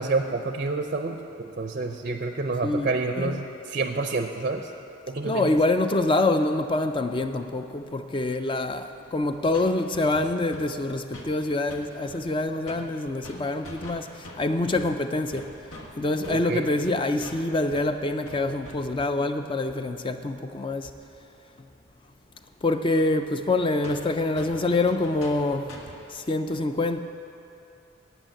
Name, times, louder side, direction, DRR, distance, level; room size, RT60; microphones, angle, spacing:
voice 1, 0.0-4.7 5.1-5.5 16.3-16.7, right 3 dB, 40° right, 0.5 m, -28 dB
voice 2, 2.6-3.4 5.2-15.5 16.0-20.9 22.6-25.7 26.1-27.0, left 2 dB, 25° left, 0.4 m, -26 dB
sound 1, 9.3-9.7 9.9-10.7 10.9-11.8 12.1-19.0 22.3-22.4 22.7-22.8 23.1-23.2 23.5-23.6 23.8-26.0, left 1 dB, 85° left, 1.4 m, -44 dB
9.0 x 8.8 x 7.8 m
head